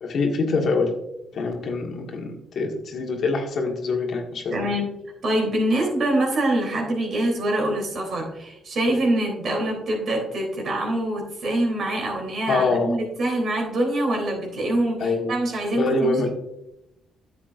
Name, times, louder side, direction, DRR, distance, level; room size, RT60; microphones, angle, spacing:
voice 1, 0.0-0.9 1.3-4.7 12.5-12.9 15.0-15.3 15.7-16.3, left 3 dB, 60° left, 2 dB, 1.6 m, -24 dB
voice 2, 4.5-4.9 5.2-16.3, right 1 dB, 55° right, 0 dB, 3.4 m, -25 dB
10.0 x 7.5 x 2.6 m, 0.85 s
cardioid pair, 90°, 0 cm